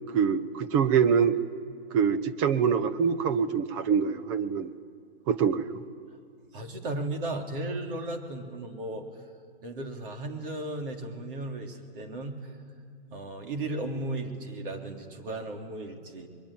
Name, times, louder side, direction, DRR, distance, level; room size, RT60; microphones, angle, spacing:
voice 1, 0.1-1.4 1.9-4.7 5.3-5.8, right 7 dB, 30° right, 12 dB, 1.0 m, -25 dB
voice 2, 6.5-9.1 9.6-12.5 13.1-16.3, right 2 dB, 55° right, 3 dB, 3.4 m, -35 dB
26.0 x 22.0 x 8.9 m, 2.2 s
hypercardioid pair, 135°, 32 cm